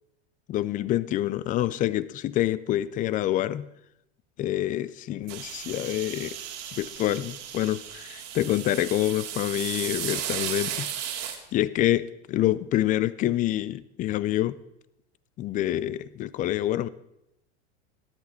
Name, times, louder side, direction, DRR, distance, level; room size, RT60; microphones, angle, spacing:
voice 1, 0.5-3.7 4.4-6.4 6.7-14.6 15.4-16.9, left 13 dB, 25° left, 19 dB, 0.4 m, -27 dB
sound 1, 5.3-11.4, right 10 dB, 45° right, 2.1 m, -35 dB
12.5 x 11.0 x 4.2 m, 0.82 s
supercardioid pair, 120°, 35 cm